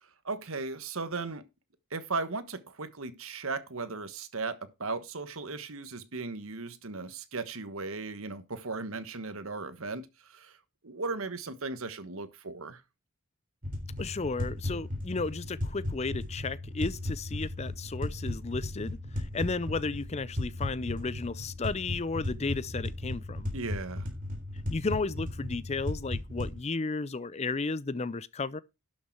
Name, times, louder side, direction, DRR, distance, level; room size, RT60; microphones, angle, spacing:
voice 1, 0.0-1.4 1.9-10.6 10.8-12.8 23.5-24.1, right 3 dB, 70° right, 1.3 m, -37 dB
sound 1, 13.6-26.6, left 1 dB, 40° right, 3.7 m, -36 dB
voice 2, 14.0-23.5 24.7-28.6, left 3 dB, 30° left, 0.5 m, -33 dB
12.0 x 6.6 x 4.6 m
head